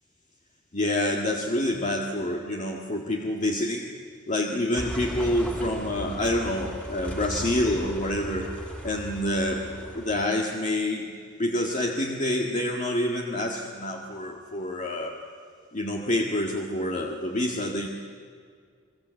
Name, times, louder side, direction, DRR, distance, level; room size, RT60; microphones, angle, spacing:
voice 1, 0.7-3.9 4.3-8.5 8.8-11.1 11.4-15.2 15.7-17.9, left 1 dB, 35° left, 0 dB, 1.8 m, -27 dB
sound 1, 4.7-10.2, equal, 5° left, 3.1 m, -37 dB
29.0 x 20.5 x 8.3 m, 2.1 s
head